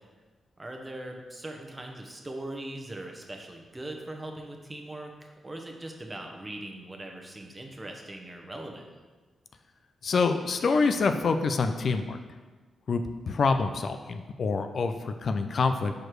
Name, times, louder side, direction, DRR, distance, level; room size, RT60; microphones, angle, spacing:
voice 1, 0.6-8.9, right 1 dB, 25° right, 2 dB, 1.0 m, -40 dB
voice 2, 10.0-12.2 12.9-15.9, left 4 dB, 60° left, 7 dB, 0.4 m, -26 dB
4.8 x 4.5 x 4.6 m, 1.3 s
supercardioid pair, 50°, 0 cm